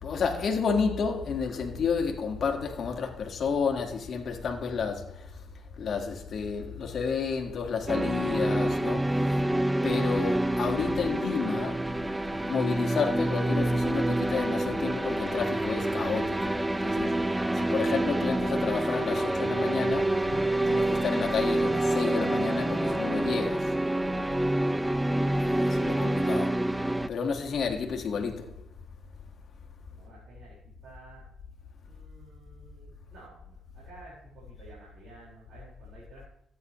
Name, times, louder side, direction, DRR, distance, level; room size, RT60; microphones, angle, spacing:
voice 1, 0.0-5.3 5.8-9.1 9.8-11.8 12.5-16.6 16.8-17.1 17.5-20.1 20.7-23.7 25.4-26.6 27.1-28.5, left 5 dB, 50° left, 1.5 m, -30 dB
sound 1, 7.9-27.1, right 1 dB, 10° right, 0.3 m, -27 dB
voice 2, 29.9-31.2 31.9-36.3, right 3 dB, 65° right, 4.2 m, -53 dB
13.5 x 8.4 x 3.0 m
cardioid pair, 90°, 0 cm